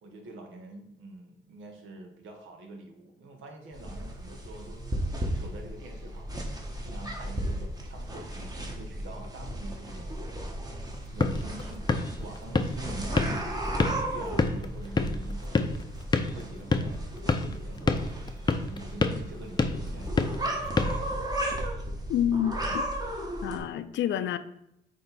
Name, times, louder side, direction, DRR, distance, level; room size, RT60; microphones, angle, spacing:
voice 1, 0.0-4.8 5.3-10.2 11.1-21.1, right 2 dB, 75° right, 3 dB, 1.4 m, -45 dB
sound 1, 3.7-23.6, right 1 dB, 20° right, 1.3 m, -35 dB
sound 2, 10.9-21.7, left 3 dB, 20° left, 0.6 m, -30 dB
voice 2, 22.1-22.8 23.4-24.4, left 10 dB, 65° left, 13 dB, 0.5 m, -28 dB
8.6 x 3.2 x 4.1 m, 0.80 s
cardioid pair, 90°, 20 cm